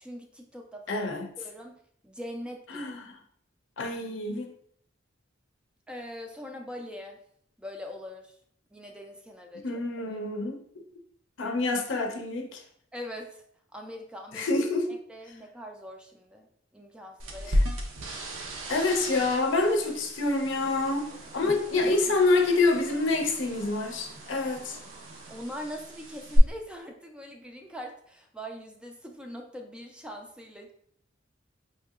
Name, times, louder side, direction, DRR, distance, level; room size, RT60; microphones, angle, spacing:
voice 1, 0.0-1.1 1.4-2.9 5.9-7.2 7.6-8.4 8.7-9.8 12.9-13.4 13.7-16.5 16.7-17.6 21.4-22.1 25.3-30.7, equal, 5° right, 0.3 m, -42 dB
voice 2, 0.9-1.3 2.7-3.1 3.8-4.5 9.6-10.8 11.4-12.6 14.3-14.9 17.4-17.6 18.7-24.8, left 3 dB, 70° left, 0.6 m, -27 dB
sound 1, 17.2-26.4, equal, 85° right, 0.7 m, -35 dB
sound 2, 20.5-25.5, right 1 dB, 45° right, 0.7 m, -49 dB
4.5 x 2.8 x 2.3 m
head